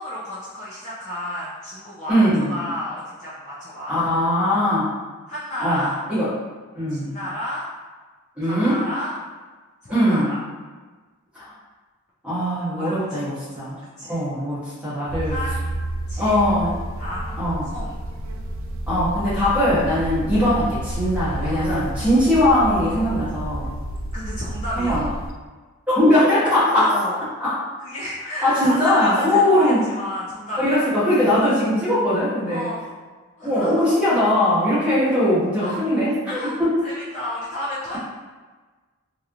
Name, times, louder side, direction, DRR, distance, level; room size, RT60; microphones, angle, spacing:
voice 1, 0.0-4.1 5.3-6.0 6.9-7.7 8.4-9.2 9.8-10.4 12.8-13.3 14.0-14.2 15.2-15.7 16.1-16.4 17.0-17.4 17.7-18.0 21.4-21.8 24.1-25.1 26.7-27.2 27.8-30.9 32.5-32.9 33.4-33.7 35.6-35.8 36.3-38.0, left 1 dB, 30° left, -9 dB, 0.5 m, -32 dB
voice 2, 2.1-2.5 3.9-4.9 5.6-6.3 6.7-7.1 8.4-8.8 9.9-10.3 11.3-11.5 12.2-13.8 14.1-15.4 16.2-16.8 17.4-17.7 18.9-23.7 24.8-25.1 25.9-27.0 27.4-27.6 28.4-29.8 30.6-32.7 33.4-36.8, left 1 dB, 5° right, -11 dB, 1.1 m, -20 dB
sound 1, 15.1-25.3, right 1 dB, 65° right, 0.3 m, -30 dB
3.1 x 2.7 x 2.4 m, 1.3 s
head